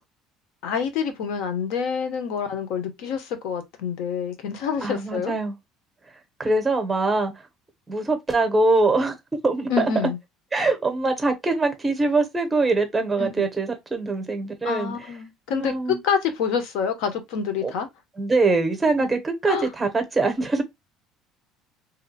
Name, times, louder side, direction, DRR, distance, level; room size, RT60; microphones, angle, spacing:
voice 1, 0.6-5.3 9.7-10.2 13.2-13.5 14.6-15.7 16.0-17.9 19.5-19.7, left 6 dB, 70° left, 0.9 m, -27 dB
voice 2, 4.8-5.6 6.4-7.3 7.9-9.1 9.4-9.9 10.5-15.1 15.5-16.0 17.6-17.7 18.2-20.6, right 3 dB, 10° right, 0.7 m, -23 dB
2.8 x 2.2 x 4.1 m
cardioid pair, 180°, 0 cm